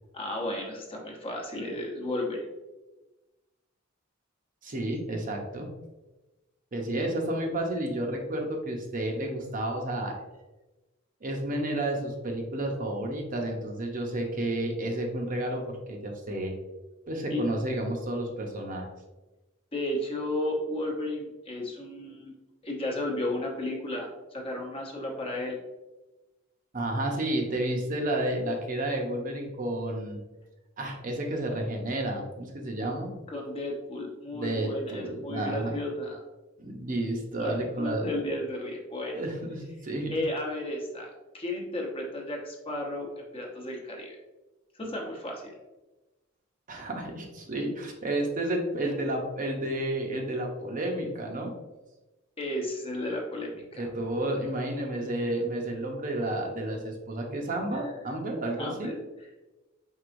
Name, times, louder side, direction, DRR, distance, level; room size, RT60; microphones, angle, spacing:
voice 1, 0.1-2.5 7.0-7.1 17.3-17.5 19.7-22.3 22.6-25.6 33.3-36.2 37.4-39.1 40.1-44.2 44.8-45.5 52.4-53.9 57.7-57.8 58.6-58.9, left 1 dB, 30° left, 0 dB, 0.9 m, -33 dB
voice 2, 4.6-5.7 6.7-10.2 11.2-16.5 17.1-18.9 26.7-30.2 30.8-33.1 34.3-35.8 36.6-38.1 39.1-40.1 46.7-51.5 53.8-58.9, right 1 dB, 40° right, 1 dB, 0.7 m, -31 dB
4.6 x 4.0 x 2.5 m, 1.1 s
head